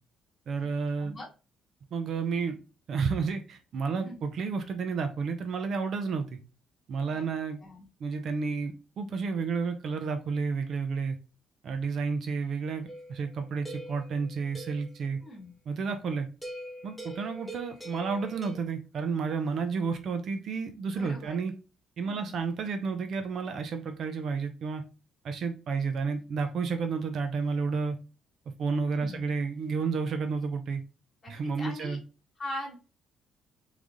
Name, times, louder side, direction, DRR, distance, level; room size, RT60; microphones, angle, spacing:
voice 1, 0.5-1.1 1.9-2.6 2.9-6.4 6.9-7.6 8.0-11.2 11.6-15.2 15.7-16.3 16.8-21.6 22.0-24.8 25.2-28.0 28.6-30.8 31.3-32.0, right 5 dB, 50° right, 7 dB, 0.6 m, -31 dB
voice 2, 3.9-4.2 7.1-7.3 7.6-7.9 15.2-15.5 20.9-21.4 22.0-22.4 28.9-29.2 31.2-32.0 32.4-32.8, left 1 dB, 25° left, -2 dB, 1.7 m, -41 dB
sound 1, 12.9-15.0 16.4-18.6, right 1 dB, ahead, 1.0 m, -43 dB
3.9 x 3.3 x 3.6 m, 0.33 s
cardioid pair, 150°, 0 cm